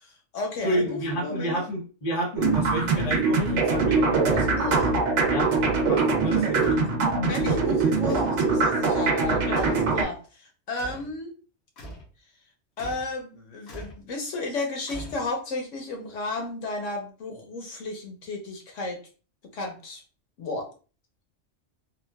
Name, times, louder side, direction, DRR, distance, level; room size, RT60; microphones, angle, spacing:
voice 1, 0.0-1.6 4.3-4.9 6.3-6.5 7.2-11.3 12.8-19.0 19.5-20.0 20.4-20.7, left 2 dB, 90° left, 2 dB, 1.2 m, -33 dB
voice 2, 0.6-4.3 5.3-7.2 9.5-9.6, right 1 dB, 40° left, -1 dB, 0.8 m, -30 dB
sound 1, 2.4-10.0, right 4 dB, 80° right, 1.0 m, -23 dB
sound 2, 6.6-6.9 8.1-8.5 9.5-9.9 10.8-11.1 11.8-12.1 12.8-13.1 13.7-14.0 14.9-15.5, right 1 dB, 65° left, 1.1 m, -41 dB
3.6 x 2.3 x 2.2 m, 0.36 s
omnidirectional pair, 1.2 m